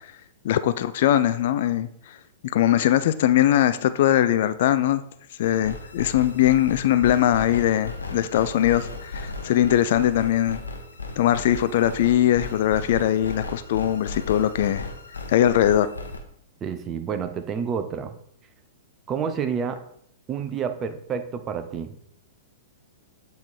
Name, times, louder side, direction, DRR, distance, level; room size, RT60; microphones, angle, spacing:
voice 1, 0.4-1.9 2.5-5.0 5.4-10.6 11.2-14.9 15.3-15.9, left 11 dB, 50° left, 12 dB, 0.3 m, -21 dB
sound 1, 5.4-16.2, left 3 dB, 75° left, 0.9 m, -36 dB
voice 2, 16.6-18.1 19.1-19.8 20.3-21.9, right 7 dB, 25° right, 9 dB, 0.6 m, -29 dB
7.9 x 3.2 x 4.3 m, 0.69 s
figure-of-eight pair, 105°, 0 cm